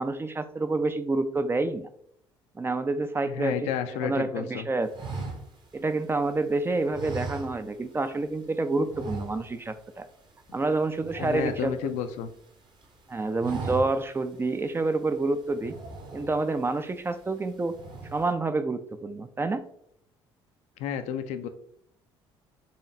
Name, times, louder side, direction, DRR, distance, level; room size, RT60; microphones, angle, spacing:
voice 1, 0.0-1.9 2.5-3.7 4.0-4.9 5.7-10.1 10.5-11.9 13.1-15.8 16.1-17.8 18.1-19.6, right 3 dB, 15° right, 10 dB, 0.4 m, -28 dB
voice 2, 3.2-4.7 11.2-12.3 20.8-21.5, left 8 dB, 60° left, 9 dB, 0.4 m, -31 dB
sound 1, 4.9-6.4 6.9-8.0 8.3-8.5 8.9-9.8 10.0-10.3 10.6-12.3 12.7-13.0 13.3-14.2 14.6-14.7 15.5-16.6 17.1-17.4 17.7-18.3, right 3 dB, 35° right, 0.9 m, -38 dB
4.1 x 3.1 x 2.7 m, 0.69 s
figure-of-eight pair, 50°, 13 cm